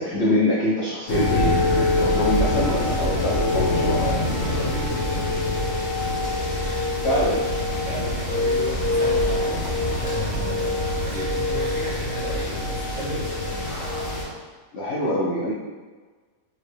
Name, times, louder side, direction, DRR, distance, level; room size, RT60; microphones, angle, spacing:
voice 1, 0.0-4.0 7.0-7.4 11.1-11.3 14.7-15.5, left 1 dB, 65° left, -6 dB, 0.6 m, -24 dB
sound 1, 1.1-14.2, left 2 dB, 40° left, 1.0 m, -24 dB
sound 2, 2.3-6.5 6.7-6.8 8.8-10.9 12.3-12.9 13.6-14.5, left 1 dB, 15° left, 0.6 m, -39 dB
voice 2, 3.4-5.3 6.6-6.8 7.8-9.8 10.0-13.6, equal, 55° right, -6 dB, 1.1 m, -33 dB
4.2 x 2.8 x 3.2 m, 1.4 s
omnidirectional pair, 1.8 m